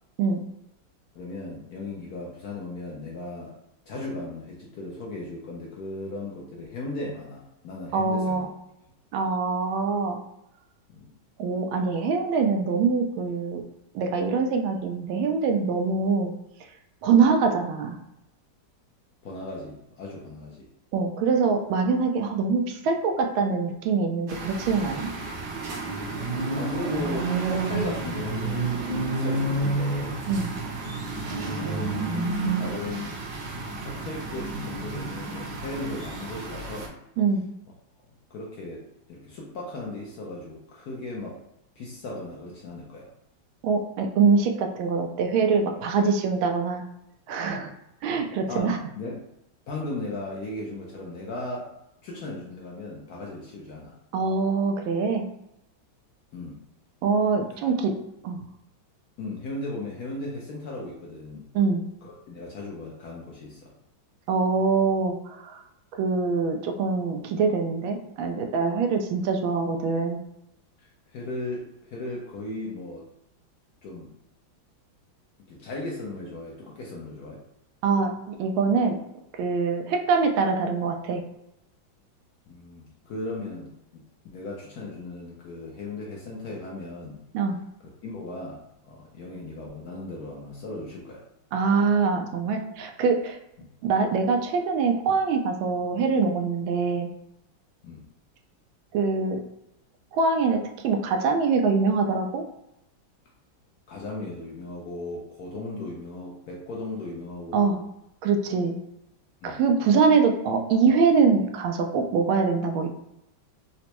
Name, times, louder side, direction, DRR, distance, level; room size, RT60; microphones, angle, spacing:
voice 1, 1.2-3.6 3.9-8.5 10.9-11.1 19.2-20.7 26.5-30.3 31.5-31.9 32.6-33.2 33.8-36.9 38.3-41.4 41.8-43.1 48.5-49.2 49.7-51.7 52.0-54.0 56.3-56.6 57.5-57.7 59.2-61.5 62.0-63.7 70.8-73.1 73.8-74.1 75.5-77.4 82.5-84.0 84.3-87.2 88.0-91.2 97.8-98.0 103.9-107.8 109.4-109.6, left 2 dB, 70° left, -3 dB, 0.9 m, -37 dB
voice 2, 7.9-8.5 9.1-10.2 11.4-13.6 13.9-16.3 17.0-18.0 20.9-25.1 30.3-30.5 37.2-37.4 43.6-46.8 47.3-47.7 48.0-48.8 54.1-55.2 57.0-58.0 58.2-58.4 61.5-61.8 64.3-65.6 65.9-70.2 77.8-79.0 79.4-81.2 87.3-87.6 91.5-93.4 93.8-97.1 98.9-99.4 100.1-102.5 107.5-107.8 108.2-108.8 109.4-112.9, right 5 dB, 90° right, 4 dB, 1.4 m, -24 dB
sound 1, 24.3-36.9, right 3 dB, 70° right, 1.2 m, -30 dB
4.0 x 2.2 x 2.9 m, 0.84 s
omnidirectional pair, 2.1 m